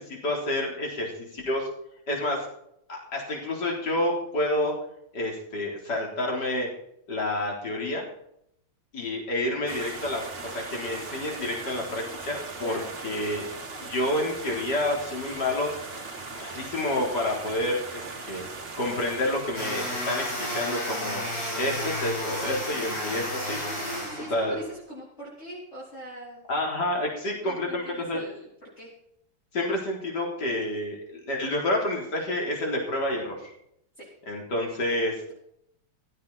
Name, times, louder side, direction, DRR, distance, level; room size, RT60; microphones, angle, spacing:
voice 1, 0.0-1.7 2.1-2.5 2.9-4.7 5.1-6.7 7.1-8.0 8.9-10.2 10.5-13.5 13.8-15.7 16.3-18.5 18.8-21.2 21.5-23.6 24.3-24.6 26.5-28.2 29.5-33.5 34.3-35.3, left 1 dB, 50° left, -1 dB, 4.4 m, -29 dB
sound 1, 9.7-20.2, right 3 dB, 30° right, 1.7 m, -39 dB
sound 2, 19.5-24.7, equal, 75° left, 8.8 m, -32 dB
voice 2, 23.3-26.7 27.2-28.5 28.8-28.9 34.0-34.1, right 1 dB, 30° left, -7 dB, 4.4 m, -42 dB
16.0 x 14.0 x 4.3 m, 0.73 s
omnidirectional pair, 2.3 m